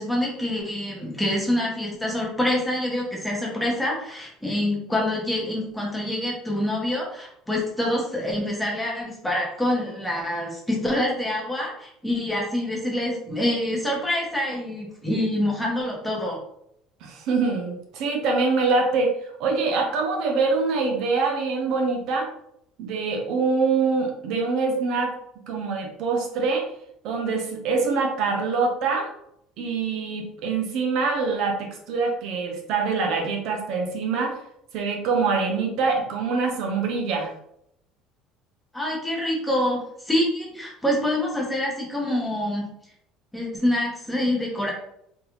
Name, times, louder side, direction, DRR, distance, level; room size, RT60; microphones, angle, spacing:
voice 1, 0.0-16.4 38.7-42.7 43.3-44.7, left 1 dB, 5° left, -3 dB, 0.8 m, -26 dB
voice 2, 17.0-22.3 22.8-25.1 25.5-26.6 27.0-29.1 29.6-34.4 34.7-37.3, right 4 dB, 60° right, 2 dB, 0.6 m, -24 dB
3.6 x 2.3 x 3.0 m, 0.75 s
cardioid pair, 160°, 0 cm